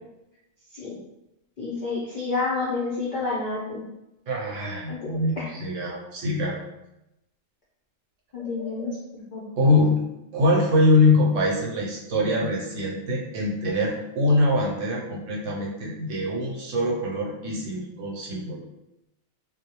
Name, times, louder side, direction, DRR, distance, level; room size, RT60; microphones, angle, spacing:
voice 1, 1.6-3.8 4.9-5.5 8.3-9.0 9.3-9.4, left 3 dB, 65° left, -6 dB, 0.4 m, -29 dB
voice 2, 4.3-6.6 9.6-9.9 10.3-18.6, left 2 dB, 70° right, -2 dB, 0.9 m, -23 dB
2.2 x 2.1 x 2.8 m, 0.88 s
omnidirectional pair, 1.4 m